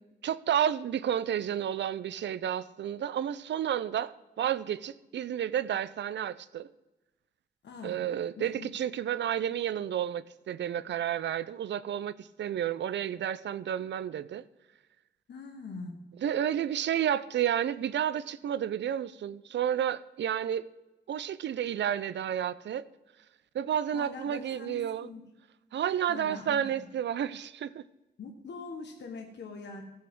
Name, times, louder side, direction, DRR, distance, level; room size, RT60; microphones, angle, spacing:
voice 1, 0.2-6.7 7.8-14.4 16.2-20.7 21.1-22.8 23.5-25.1 25.7-27.8, right 10 dB, 80° right, 17 dB, 0.5 m, -31 dB
voice 2, 8.4-8.7 15.3-15.9 23.9-25.2 26.1-26.9 28.2-29.8, left 4 dB, 75° left, 2 dB, 1.3 m, -43 dB
15.5 x 7.7 x 3.7 m, 1.0 s
wide cardioid pair, 155°, 18 cm